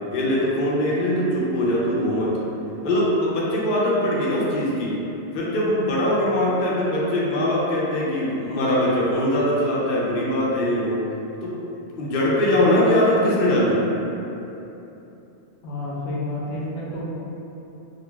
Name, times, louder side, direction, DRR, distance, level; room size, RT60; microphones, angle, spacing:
voice 1, 0.1-2.3 2.8-5.0 5.3-11.0 11.4-11.6 12.0-13.8, left 1 dB, 55° left, -6 dB, 0.6 m, -21 dB
voice 2, 15.6-17.0, left 2 dB, 80° left, -5 dB, 0.9 m, -30 dB
3.8 x 2.2 x 2.2 m, 2.9 s
omnidirectional pair, 1.2 m